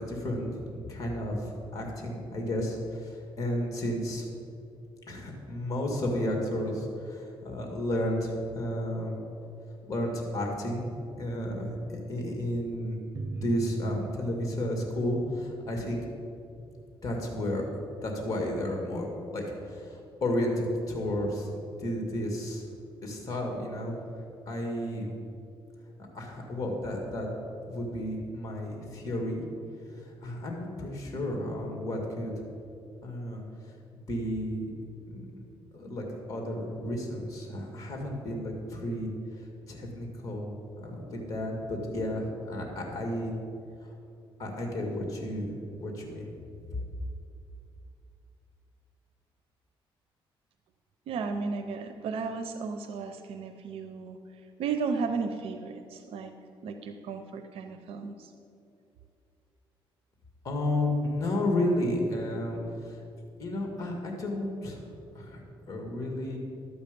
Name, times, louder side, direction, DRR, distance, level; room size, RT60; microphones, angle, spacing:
voice 1, 0.0-4.2 5.1-9.2 9.9-10.9 11.2-13.0 13.3-16.0 17.0-17.6 18.0-21.5 21.8-22.6 23.0-24.0 24.5-25.1 26.1-27.3 27.7-29.4 29.9-32.3 33.0-33.4 34.1-34.7 35.1-35.4 35.7-39.1 39.7-43.3 44.4-45.5 45.8-46.3 60.4-63.0 63.4-64.8 65.2-65.4 65.7-66.4, left 1 dB, 35° left, 1 dB, 2.1 m, -32 dB
sound 1, 13.1-18.3, right 3 dB, 35° right, 0.5 m, -43 dB
voice 2, 51.1-54.2 54.6-56.3 56.6-58.3, right 5 dB, 80° right, 8 dB, 0.6 m, -34 dB
12.5 x 8.1 x 5.2 m, 2.6 s
cardioid pair, 110°, 10 cm